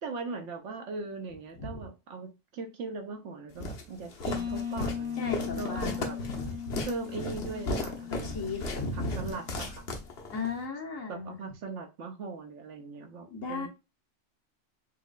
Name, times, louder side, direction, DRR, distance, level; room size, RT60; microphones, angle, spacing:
voice 1, 0.0-6.2 6.8-8.3 8.6-9.8 11.1-13.7, right 4 dB, 65° right, 1.1 m, -40 dB
Walk footsteps, 3.6-10.5, left 2 dB, 55° left, 1.0 m, -36 dB
sound 1, 4.3-9.8, left 8 dB, 85° right, 1.3 m, -38 dB
voice 2, 5.2-6.8 8.1-9.3 10.3-11.4 13.3-13.7, left 3 dB, 75° left, 1.6 m, -36 dB
4.4 x 3.0 x 2.4 m
omnidirectional pair, 1.4 m